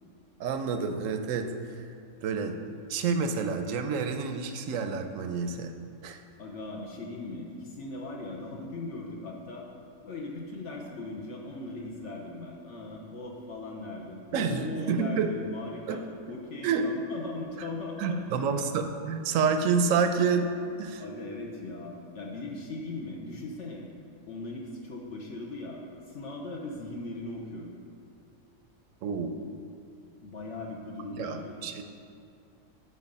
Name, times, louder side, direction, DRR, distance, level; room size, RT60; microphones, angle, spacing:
voice 1, 0.4-1.8 2.2-2.6 2.9-5.7 6.0-6.2 14.3-15.3 15.9-16.0 16.6-16.9 18.0-20.5 20.8-21.0 29.0-29.4 31.1-31.8, right 5 dB, 90° right, 7 dB, 1.0 m, -28 dB
voice 2, 6.4-9.7 10.0-18.2 21.0-23.9 24.3-25.8 26.1-27.7 30.2-31.8, left 2 dB, 65° left, -1 dB, 1.2 m, -39 dB
8.2 x 5.5 x 5.3 m, 2.5 s
omnidirectional pair, 1.3 m